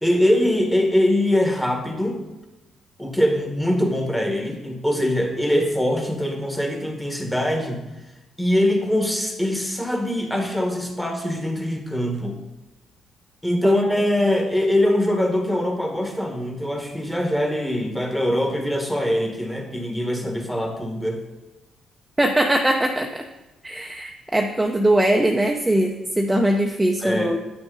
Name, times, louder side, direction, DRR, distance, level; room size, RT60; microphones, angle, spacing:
voice 1, 0.0-2.2 3.0-7.8 8.4-12.4 13.4-21.2 27.0-27.3, left 1 dB, 5° left, 3 dB, 1.4 m, -22 dB
voice 2, 22.2-23.2 23.6-27.4, right 1 dB, 10° right, 3 dB, 0.6 m, -21 dB
8.5 x 6.1 x 3.9 m, 1.0 s
cardioid pair, 90°, 0 cm